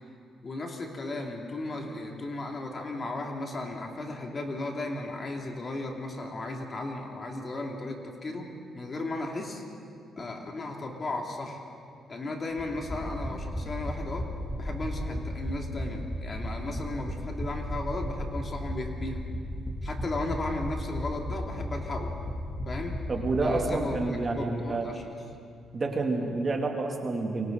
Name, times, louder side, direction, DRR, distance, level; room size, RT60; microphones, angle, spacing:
voice 1, 0.4-9.6 10.2-11.6 12.1-14.3 14.6-19.2 19.8-22.1 22.6-23.0 23.4-25.1, left 2 dB, 35° left, 1 dB, 2.7 m, -35 dB
sound 1, 12.6-24.3 24.6-24.7 24.9-25.0, equal, 10° left, 3.0 m, -35 dB
voice 2, 23.1-24.9 25.7-27.5, right 3 dB, 35° right, 1 dB, 2.7 m, -29 dB
28.0 x 23.5 x 4.0 m, 2.4 s
cardioid pair, 90°, 0 cm